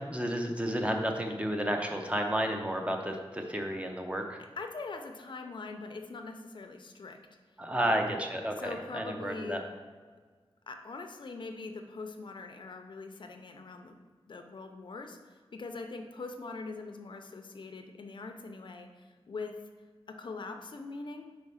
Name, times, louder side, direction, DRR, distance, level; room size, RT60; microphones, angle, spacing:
voice 1, 0.1-4.4 7.6-9.6, equal, 10° right, 3 dB, 0.8 m, -31 dB
voice 2, 4.5-7.2 7.8-8.2 8.6-9.7 10.7-14.0 14.3-19.6 20.1-21.2, left 3 dB, 50° left, 5 dB, 0.6 m, -42 dB
4.8 x 4.2 x 5.6 m, 1.5 s
wide cardioid pair, 90°, 10 cm